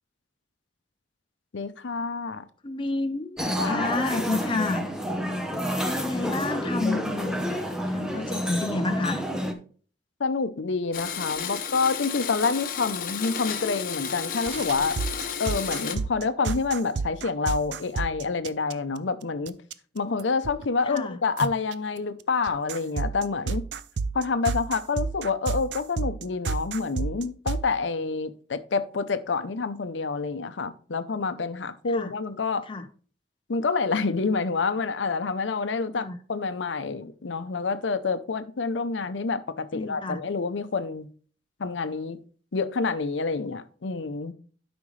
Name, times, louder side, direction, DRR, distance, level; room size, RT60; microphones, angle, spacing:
voice 1, 1.5-2.4 3.6-4.0 10.2-15.0 15.4-19.5 19.9-23.6 24.1-32.7 33.5-41.1 41.6-42.2 42.5-44.3, left 4 dB, 80° left, 0.7 m, -28 dB
voice 2, 2.6-4.9 5.8-7.4 7.9-9.2 20.9-21.2 31.9-32.1 32.7-32.9 36.0-36.2 39.7-40.2, left 3 dB, 30° left, 0.5 m, -30 dB
sound 1, 3.4-9.5, equal, 5° right, 0.8 m, -29 dB
Domestic sounds home sounds, 10.9-16.0, left 7 dB, 50° left, 0.9 m, -33 dB
sound 2, 14.4-19.0 19.5-19.7 20.2-20.7 21.0-21.1 21.4-21.7 22.4-27.7, right 4 dB, 70° right, 0.5 m, -31 dB
12.0 x 5.2 x 3.2 m
head